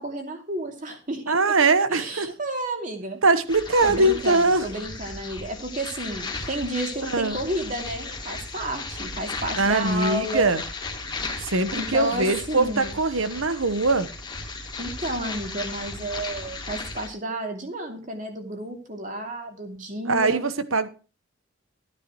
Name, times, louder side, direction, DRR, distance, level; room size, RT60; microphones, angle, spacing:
voice 1, 0.0-1.4 1.9-3.2 3.8-10.5 11.7-12.9 14.8-20.4, right 1 dB, 40° right, 2.8 m, -31 dB
voice 2, 1.3-2.3 3.2-4.7 7.0-7.4 9.6-10.6 11.4-14.1 20.1-20.9, right 3 dB, 75° right, 1.2 m, -22 dB
sound 1, 3.5-17.1, left 3 dB, 20° left, 2.2 m, -35 dB
14.5 x 9.8 x 3.1 m
head